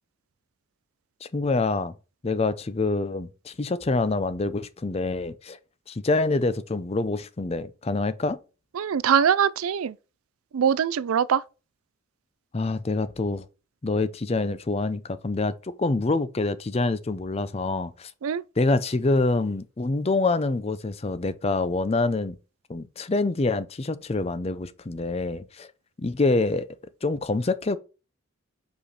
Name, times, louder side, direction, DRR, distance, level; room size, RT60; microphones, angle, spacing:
voice 1, 1.2-1.9 2.2-5.6 5.9-8.4 12.5-13.4 13.8-18.1 18.6-22.4 22.7-25.7 26.0-26.7 27.0-27.8, left 3 dB, 30° left, 0.5 m, -26 dB
voice 2, 8.8-9.9 10.5-11.4 18.2-18.4, right 8 dB, 80° right, 0.4 m, -22 dB
5.4 x 4.9 x 4.2 m
head